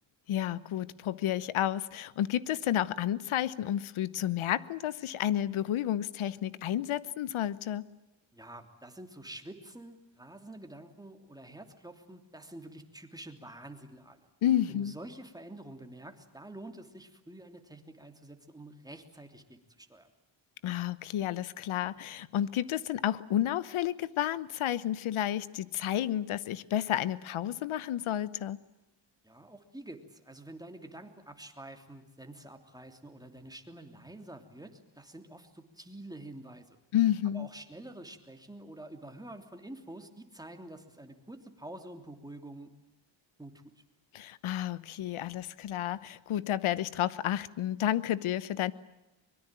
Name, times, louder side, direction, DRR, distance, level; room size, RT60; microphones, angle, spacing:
voice 1, 0.3-7.9 14.4-14.9 20.6-28.6 36.9-37.5 44.1-48.7, left 11 dB, 85° left, 18 dB, 1.1 m, -31 dB
voice 2, 8.3-14.3 14.7-20.1 29.2-36.8 37.3-42.7 43.4-43.8, right 1 dB, 10° right, 5 dB, 3.2 m, -48 dB
24.0 x 22.5 x 9.0 m, 0.99 s
cardioid pair, 105°, 48 cm